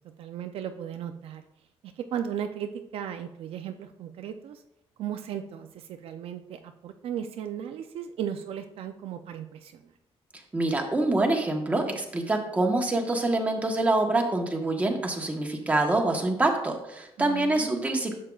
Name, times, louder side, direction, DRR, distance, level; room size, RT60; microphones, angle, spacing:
voice 1, 0.2-1.4 2.0-4.6 5.0-9.8 17.2-17.9, right 9 dB, 65° right, 7 dB, 0.5 m, -36 dB
voice 2, 10.5-18.1, right 2 dB, 15° right, 2 dB, 1.2 m, -26 dB
11.0 x 7.4 x 2.4 m, 0.84 s
cardioid pair, 145°, 10 cm